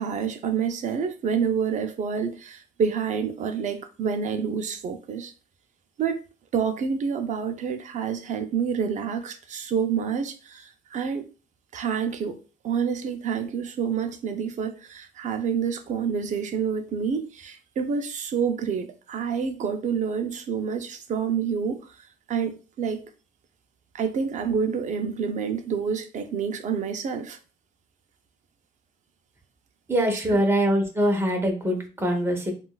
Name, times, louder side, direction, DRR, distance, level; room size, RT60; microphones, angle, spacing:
voice 1, 0.0-5.3 6.0-6.2 6.5-11.3 11.7-21.8 22.3-23.1 23.9-27.4 30.3-30.4, right 6 dB, 45° right, 0.6 m, -28 dB
voice 2, 29.9-32.5, equal, 15° right, 1.0 m, -23 dB
3.6 x 2.4 x 2.3 m
cardioid pair, 110°, 17 cm